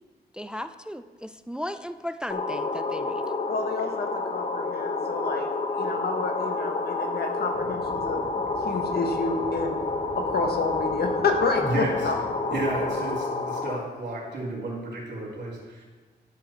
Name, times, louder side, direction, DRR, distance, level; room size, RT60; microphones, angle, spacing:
voice 1, 0.3-3.2, equal, 5° right, 11 dB, 0.3 m, -36 dB
sound 1, 2.3-13.8, left 3 dB, 35° left, 0.7 m, -29 dB
voice 2, 3.5-5.5 5.7-8.2 8.6-9.9 10.2-12.2, left 3 dB, 70° left, 4 dB, 1.3 m, -29 dB
sound 2, 7.5-13.1, right 3 dB, 40° right, 1.1 m, -45 dB
voice 3, 11.6-11.9 12.5-15.8, right 2 dB, 85° right, -4 dB, 3.3 m, -32 dB
10.5 x 6.6 x 4.4 m, 1.3 s
cardioid pair, 95°, 17 cm